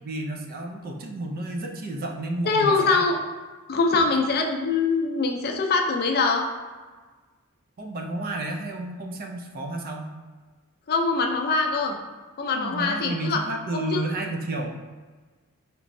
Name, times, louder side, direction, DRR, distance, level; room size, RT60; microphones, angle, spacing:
voice 1, 0.0-3.0 7.8-10.1 12.5-14.8, right 2 dB, 40° right, 3 dB, 0.4 m, -31 dB
voice 2, 2.5-3.2 3.7-6.4 10.9-12.0 12.4-13.4 13.7-14.0, left 4 dB, 45° left, 2 dB, 0.4 m, -23 dB
4.5 x 3.0 x 2.6 m, 1.4 s
head